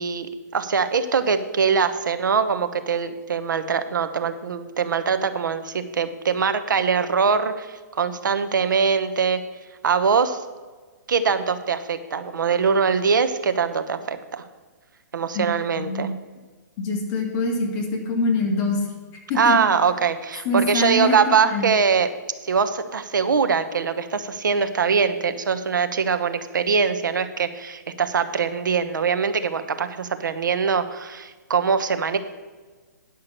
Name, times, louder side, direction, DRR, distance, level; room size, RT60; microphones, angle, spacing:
voice 1, 0.0-9.4 9.8-10.4 11.1-14.4 15.1-16.1 19.3-22.1 22.4-32.2, right 6 dB, 85° right, 10 dB, 1.0 m, -22 dB
voice 2, 16.8-18.8 19.3-19.6 20.5-21.7, left 2 dB, 25° left, 0 dB, 1.8 m, -24 dB
10.5 x 5.7 x 6.7 m, 1.4 s
hypercardioid pair, 160°, 10 cm